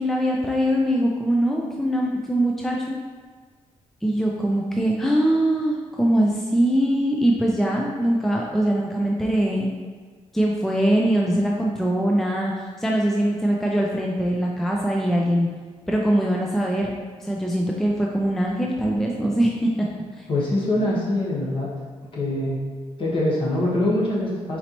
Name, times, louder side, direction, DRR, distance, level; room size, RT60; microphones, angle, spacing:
voice 1, 0.0-3.0 4.0-9.7 10.3-15.5 15.9-19.9 20.2-20.3, right 1 dB, ahead, -2 dB, 0.3 m, -22 dB
voice 2, 20.3-21.7 22.1-22.6 23.0-24.6, left 1 dB, 45° left, -5 dB, 1.2 m, -23 dB
4.4 x 4.0 x 2.9 m, 1.5 s
cardioid pair, 135°, 12 cm